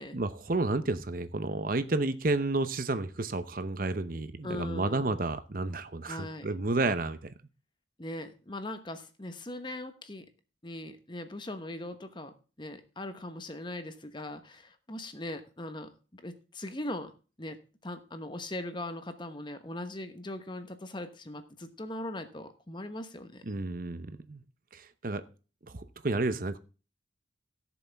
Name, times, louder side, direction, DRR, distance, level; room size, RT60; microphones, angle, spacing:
voice 1, 0.1-7.3 23.5-24.4 24.7-25.2 25.7-26.6, right 2 dB, 45° right, 0.8 m, -31 dB
voice 2, 4.4-5.2 6.0-6.5 8.0-10.3 10.6-17.1 17.4-23.4, left 1 dB, 25° left, 1.1 m, -40 dB
17.0 x 7.1 x 3.5 m
head